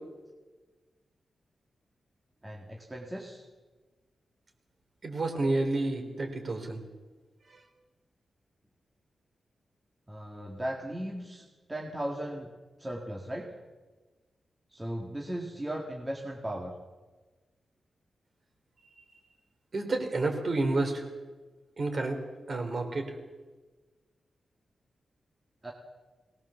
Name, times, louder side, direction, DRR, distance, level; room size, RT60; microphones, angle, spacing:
voice 1, 2.4-3.5 10.1-12.5 12.8-13.5 14.7-16.7 25.6-25.7, right 1 dB, 15° right, -1 dB, 2.0 m, -37 dB
voice 2, 5.0-6.8 19.7-21.0 21.8-22.2 22.5-23.0, right 2 dB, 40° right, 4 dB, 3.7 m, -29 dB
23.0 x 19.0 x 7.1 m, 1.3 s
wide cardioid pair, 160°, 0 cm